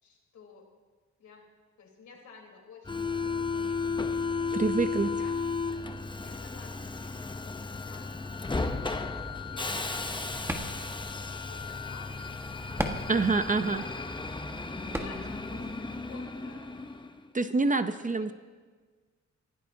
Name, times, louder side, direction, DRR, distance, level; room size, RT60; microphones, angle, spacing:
voice 1, 0.0-0.7 1.2-1.4 1.8-3.8 4.1-4.9 5.2-5.4 6.2-8.2 8.5-13.9 14.8-16.7 17.3-18.3, left 4 dB, 80° left, -1 dB, 4.0 m, -53 dB
Subway metro underground, 2.8-17.2, left 4 dB, 15° left, 0.8 m, -34 dB
voice 2, 4.5-5.1 13.1-13.9 17.3-18.3, right 3 dB, 25° right, 10 dB, 0.7 m, -26 dB
sound 1, 9.8-15.8, right 1 dB, 10° right, 1.6 m, -40 dB
27.5 x 16.5 x 2.8 m, 1.5 s
cardioid pair, 85°, 29 cm